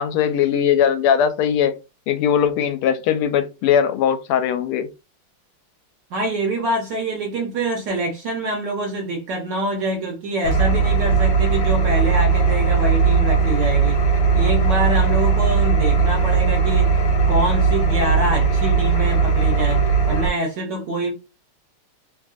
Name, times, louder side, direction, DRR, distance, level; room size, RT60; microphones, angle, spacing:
voice 1, 0.0-1.7 2.1-4.9, left 8 dB, 90° left, 1.5 m, -19 dB
voice 2, 6.1-14.0 14.3-17.0 17.3-21.1, right 1 dB, 65° right, 1.2 m, -25 dB
Engine, 10.4-20.3, right 5 dB, 70° left, 1.5 m, -18 dB
3.5 x 2.6 x 2.4 m
omnidirectional pair, 2.4 m